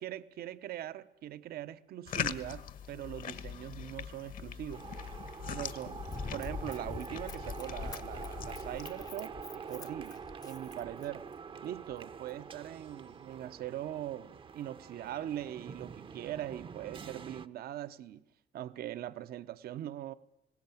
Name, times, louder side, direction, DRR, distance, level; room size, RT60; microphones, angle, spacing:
voice 1, 0.0-4.9 5.5-6.1 6.3-11.3 11.6-18.2 18.5-20.1, right 12 dB, 65° right, 0.9 m, -41 dB
sound 1, 2.1-8.9, left 8 dB, 55° left, 1.3 m, -42 dB
sound 2, 4.7-17.5, right 6 dB, 30° right, 0.8 m, -46 dB
Run, 6.1-11.3 11.9-12.0, left 4 dB, 20° left, 0.7 m, -45 dB
19.5 x 17.5 x 9.1 m
cardioid pair, 110°, 17 cm